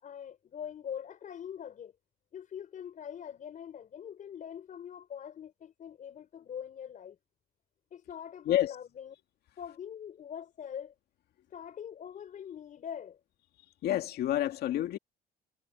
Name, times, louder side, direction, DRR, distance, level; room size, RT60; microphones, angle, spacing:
voice 1, 0.0-1.9 2.3-7.2 7.9-9.2 9.6-10.9 11.5-13.2, left 8 dB, 50° left, 5.2 m, -43 dB
voice 2, 13.8-15.0, left 12 dB, 70° left, 2.2 m, -28 dB
cardioid pair, 110°, 17 cm